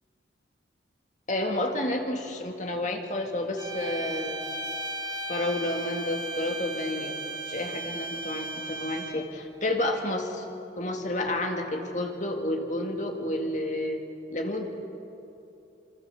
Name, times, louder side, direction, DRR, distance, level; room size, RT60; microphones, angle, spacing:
voice 1, 1.3-4.4 5.3-10.4 10.8-14.0 14.3-14.7, left 1 dB, 40° left, 3 dB, 2.1 m, -30 dB
sound 1, 3.6-9.3, right 2 dB, 20° right, 2.0 m, -36 dB
26.5 x 25.5 x 7.1 m, 2.7 s
head